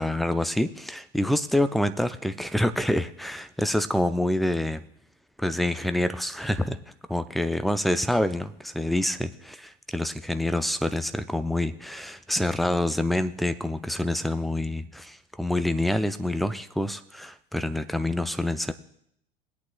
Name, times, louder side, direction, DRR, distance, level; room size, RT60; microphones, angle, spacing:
voice 1, 0.0-4.8 5.4-6.8 7.1-18.7, left 1 dB, ahead, 12 dB, 0.4 m, -27 dB
21.0 x 8.5 x 2.3 m, 0.72 s
figure-of-eight pair, 85°, 30 cm